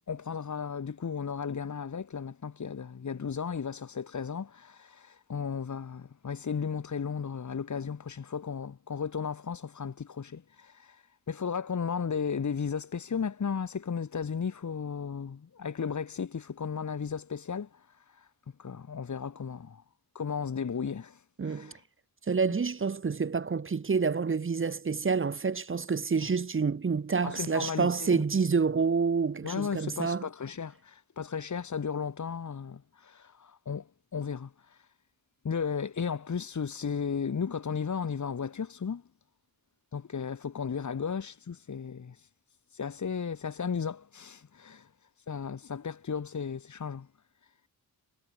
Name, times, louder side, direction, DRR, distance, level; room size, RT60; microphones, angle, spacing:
voice 1, 0.1-17.8 18.1-18.3 18.6-19.8 20.1-21.8 27.2-28.2 29.4-34.8 35.4-39.0 39.9-42.2 42.7-44.9 45.3-47.1, left 6 dB, 50° left, 4.0 m, -35 dB
voice 2, 21.4-21.7 22.3-30.2, right 5 dB, 35° right, 1.2 m, -28 dB
wide cardioid pair, 155°, 38 cm